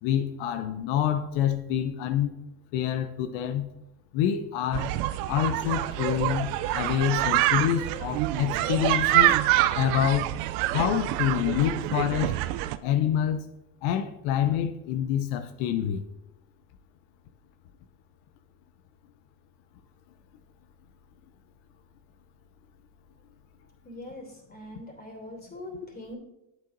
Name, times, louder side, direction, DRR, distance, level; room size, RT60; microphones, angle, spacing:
voice 1, 0.0-2.3 2.7-3.7 4.1-4.9 5.3-9.4 9.7-10.3 10.7-12.4 12.8-13.5 13.8-16.0, left 10 dB, 65° left, 0.7 m, -27 dB
sound 1, 4.7-12.8, right 14 dB, 70° right, 0.5 m, -26 dB
voice 2, 23.8-26.2, left 1 dB, 20° left, 2.8 m, -42 dB
8.2 x 7.7 x 2.6 m
hypercardioid pair, 70°, 48 cm